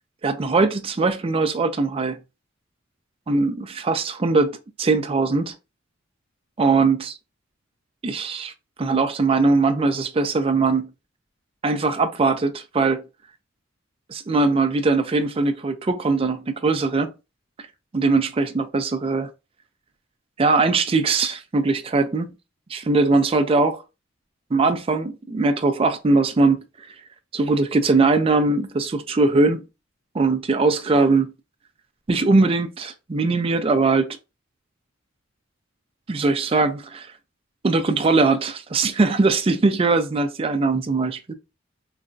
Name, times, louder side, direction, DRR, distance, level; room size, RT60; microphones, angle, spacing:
voice 1, 0.2-2.2 3.3-5.5 6.6-7.1 8.0-8.5 8.8-10.9 11.6-13.0 14.1-17.1 17.9-19.3 20.4-22.3 22.7-23.8 24.5-26.6 27.3-29.6 30.1-31.3 32.1-34.2 36.1-37.1 37.6-41.3, right 3 dB, 30° right, 0.4 m, -21 dB
3.9 x 2.2 x 2.5 m
head